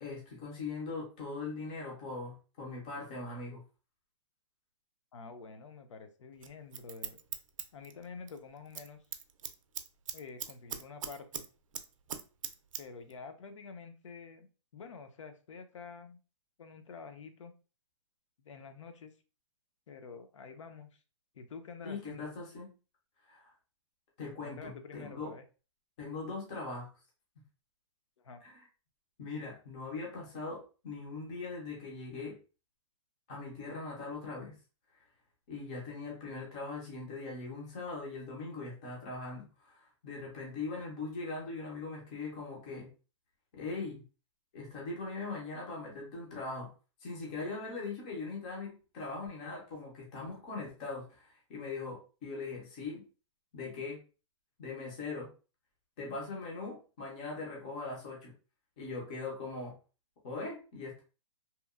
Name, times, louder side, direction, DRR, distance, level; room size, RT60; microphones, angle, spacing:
voice 1, 0.0-3.6 21.8-22.7 23.3-23.5 24.2-25.3 26.0-26.9 28.4-28.5 29.2-32.4 33.3-34.6 34.9-35.0 35.5-42.9 43.5-44.0 44.5-46.7 47.0-53.0 53.5-54.0 54.6-55.3 56.0-58.3 58.8-59.7 60.2-61.0, left 3 dB, 15° left, -2 dB, 0.3 m, -41 dB
voice 2, 5.1-7.2 7.7-9.0 10.1-11.4 12.8-14.5 14.7-16.2 16.6-17.5 18.4-19.1 19.9-21.0 21.3-22.3 24.4-25.4 28.2-28.4, left 5 dB, 70° left, 8 dB, 0.5 m, -48 dB
Scissors, 6.4-8.4 8.7-8.9 9.1-11.5 11.7-12.8 13.1-13.2, right 8 dB, 80° right, 0.4 m, -40 dB
2.8 x 2.0 x 2.3 m, 0.34 s
hypercardioid pair, 175°, 17 cm